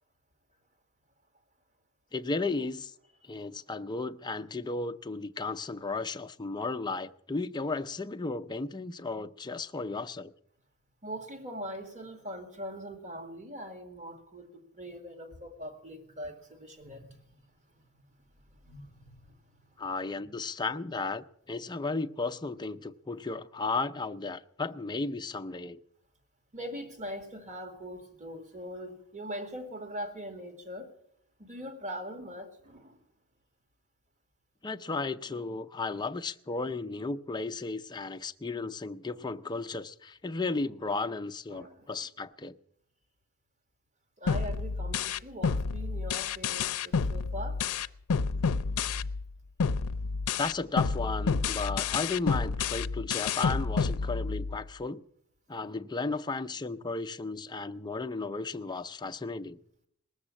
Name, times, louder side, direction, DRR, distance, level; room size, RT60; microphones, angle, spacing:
voice 1, 2.1-2.9 3.2-10.3 19.8-25.8 34.6-42.6 50.4-55.0 55.5-59.6, left 3 dB, 20° left, 0.5 m, -34 dB
voice 2, 11.0-17.4 18.5-19.6 26.5-30.9 31.4-33.0 41.5-41.9 44.2-47.6, equal, 35° right, 2.1 m, -42 dB
sound 1, 44.3-49.3 49.6-54.6, left 5 dB, 85° left, 0.5 m, -30 dB
19.0 x 7.3 x 9.8 m
head